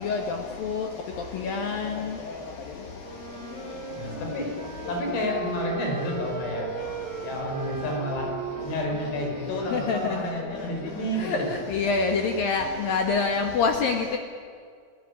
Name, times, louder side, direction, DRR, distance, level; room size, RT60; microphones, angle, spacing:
voice 1, 1.4-1.9 9.7-10.2 11.2-11.4 11.7-14.2, left 4 dB, 60° left, 4 dB, 2.8 m, -25 dB
Wind instrument woodwind instrument, 3.0-11.4, right 4 dB, 25° right, 4.0 m, -38 dB
voice 2, 4.0-4.5 4.9-6.7 7.2-8.3 8.6-11.5, left 1 dB, 80° left, 1 dB, 7.7 m, -30 dB
28.5 x 18.0 x 10.0 m, 2.1 s
omnidirectional pair, 5.4 m